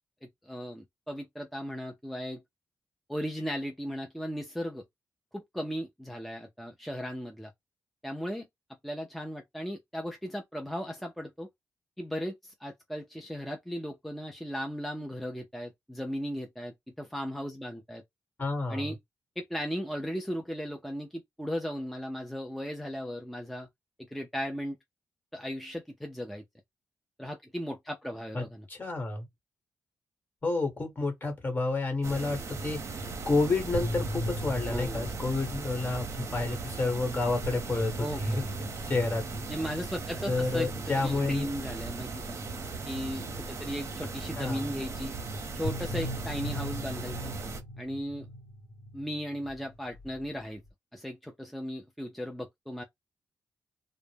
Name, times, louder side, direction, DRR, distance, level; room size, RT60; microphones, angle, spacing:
voice 1, 0.2-2.4 3.1-4.8 5.3-7.5 8.0-8.5 8.8-11.5 12.0-18.0 18.7-19.0 19.4-23.7 24.1-24.8 25.3-26.4 27.2-28.7 34.7-35.2 38.0-38.5 39.5-40.7 41.0-42.4 42.8-45.1 45.5-47.3 47.8-48.3 48.9-50.6 50.9-52.8, equal, ahead, 0.4 m, -36 dB
voice 2, 18.4-18.9 28.3-29.3 30.4-38.4 38.8-39.4 40.3-41.5 44.4-44.6, left 3 dB, 35° left, 1.1 m, -30 dB
sound 1, 32.0-47.6, right 3 dB, 55° right, 0.6 m, -38 dB
sound 2, 33.5-43.7 45.6-50.7, equal, 80° left, 0.9 m, -40 dB
2.0 x 2.0 x 3.2 m
cardioid pair, 70°, 6 cm